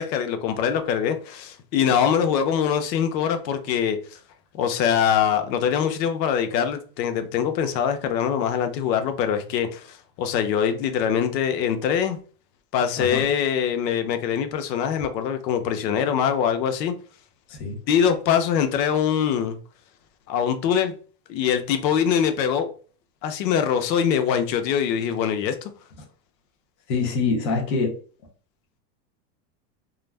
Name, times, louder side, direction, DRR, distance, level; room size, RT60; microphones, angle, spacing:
voice 1, 0.0-4.2 4.5-12.2 12.7-16.9 17.9-19.6 20.3-20.9 21.3-22.7 23.2-25.6, left 8 dB, 90° left, 0.7 m, -23 dB
voice 2, 13.0-13.3 17.5-17.8 26.9-27.9, left 4 dB, 30° left, 0.4 m, -25 dB
2.4 x 2.0 x 3.1 m
supercardioid pair, 165°, 49 cm